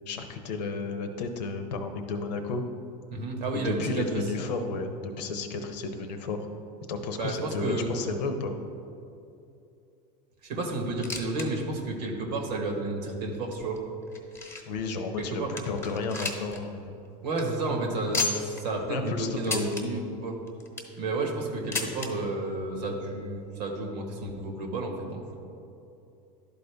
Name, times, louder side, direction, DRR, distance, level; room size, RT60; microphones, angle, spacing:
voice 1, 0.1-2.6 3.6-6.5 6.9-8.5 14.7-17.1 18.9-20.0, left 3 dB, 90° left, 6 dB, 0.8 m, -32 dB
voice 2, 3.1-4.2 7.2-7.9 10.4-13.8 15.2-15.5 17.2-20.3 21.0-25.3, right 2 dB, 85° right, 2 dB, 1.4 m, -31 dB
sound 1, 10.8-11.5 11.8-11.9 12.5-12.6 13.3-14.8 15.2-15.3 15.6-16.6 16.9-17.0 17.3-17.4 18.1-18.6 19.4-19.8 20.5-21.0 21.7-22.1 23.1-23.2 23.4-23.5 24.3-24.4, left 3 dB, 10° left, 1.1 m, -33 dB
11.5 x 4.1 x 3.4 m, 2.7 s
supercardioid pair, 105°, 21 cm